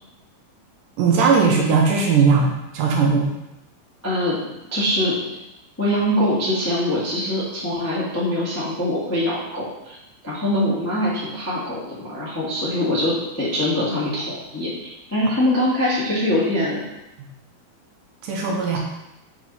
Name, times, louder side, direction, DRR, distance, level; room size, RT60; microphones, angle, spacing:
voice 1, 1.0-3.3 17.2-17.3 18.2-18.8, right 5 dB, 75° right, 0 dB, 2.2 m, -18 dB
voice 2, 4.0-4.4 4.7-5.2 5.8-10.0 10.2-16.8, left 1 dB, 25° left, -8 dB, 0.3 m, -23 dB
7.1 x 4.6 x 4.2 m, 0.92 s
omnidirectional pair, 4.3 m